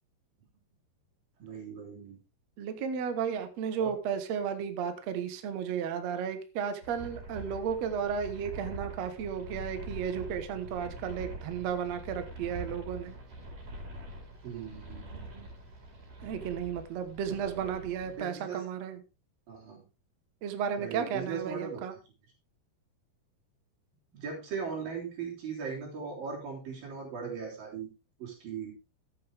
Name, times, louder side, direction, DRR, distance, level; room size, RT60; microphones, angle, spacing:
voice 1, 1.4-2.2 3.8-3.9 14.4-15.5 17.3-17.6 18.1-18.6 19.5-19.9 20.8-21.8 24.1-27.9 28.2-28.7, right 6 dB, 55° right, -1 dB, 5.0 m, -39 dB
voice 2, 2.6-13.2 16.2-19.0 20.4-21.9, right 7 dB, 85° right, 9 dB, 1.4 m, -34 dB
sound 1, 6.8-18.2, right 1 dB, 40° right, 6.4 m, -44 dB
13.0 x 8.6 x 3.5 m, 0.30 s
omnidirectional pair, 5.1 m